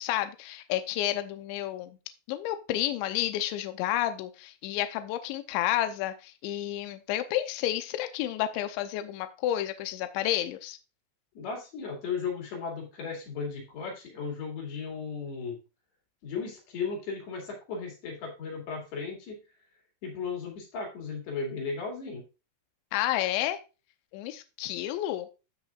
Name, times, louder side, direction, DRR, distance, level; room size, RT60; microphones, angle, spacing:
voice 1, 0.0-2.0 2.3-10.8 22.9-23.6 24.1-25.3, left 13 dB, 85° left, 9 dB, 2.9 m, -30 dB
voice 2, 11.4-15.6 16.2-19.4 20.0-22.2, left 5 dB, 60° left, 0 dB, 4.1 m, -35 dB
15.5 x 5.3 x 2.4 m, 0.30 s
omnidirectional pair, 5.6 m